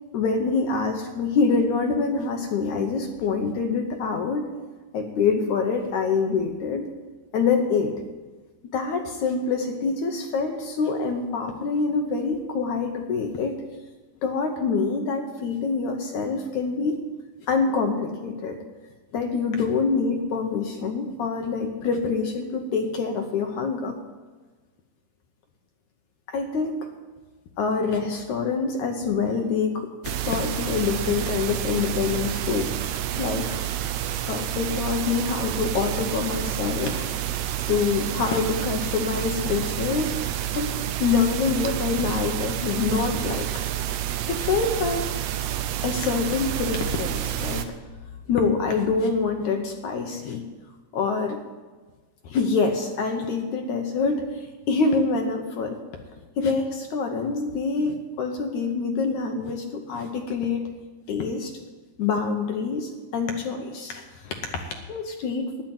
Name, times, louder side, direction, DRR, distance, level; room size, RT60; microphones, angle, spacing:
voice 1, 0.1-4.5 4.9-6.9 7.3-7.9 8.7-13.6 14.2-17.0 17.5-18.6 19.1-24.0 26.3-26.8 27.6-32.8 33.2-33.6 34.3-37.1 37.7-40.1 40.5-40.7 41.0-43.5 44.3-45.1 45.8-47.7 48.3-50.4 50.9-51.4 52.2-55.8 56.4-60.7 61.1-61.5 62.0-65.6, left 4 dB, 70° left, 4 dB, 2.1 m, -26 dB
sound 1, 30.0-47.7, right 12 dB, 75° right, 1.8 m, -29 dB
11.5 x 10.5 x 8.8 m, 1.3 s
omnidirectional pair, 4.0 m